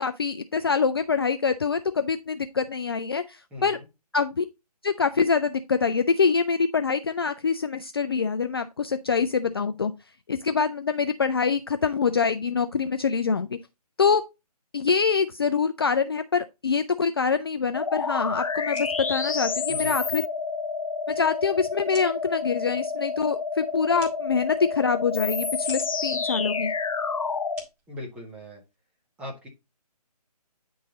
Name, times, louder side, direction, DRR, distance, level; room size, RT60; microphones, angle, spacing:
voice 1, 0.0-3.8 4.1-4.4 4.8-9.9 10.3-13.6 14.0-14.2 14.7-20.2 21.1-26.7, left 5 dB, 40° left, 0.4 m, -25 dB
voice 2, 3.5-3.9 19.7-20.0 27.9-28.6 29.2-29.5, left 1 dB, 5° right, 1.3 m, -39 dB
sound 1, 17.7-27.6, left 4 dB, 55° left, 0.8 m, -29 dB
sound 2, 18.5-28.7, right 2 dB, 20° right, 2.2 m, -52 dB
9.6 x 3.9 x 3.9 m
figure-of-eight pair, 145°, 21 cm